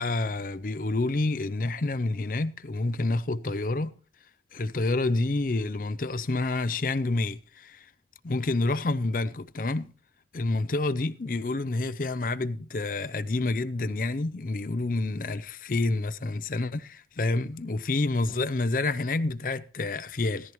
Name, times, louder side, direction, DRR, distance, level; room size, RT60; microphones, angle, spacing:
voice 1, 0.0-3.9 4.5-7.9 8.2-9.9 10.3-20.5, left 2 dB, 50° left, 0.6 m, -28 dB
18.0 x 14.0 x 3.1 m
head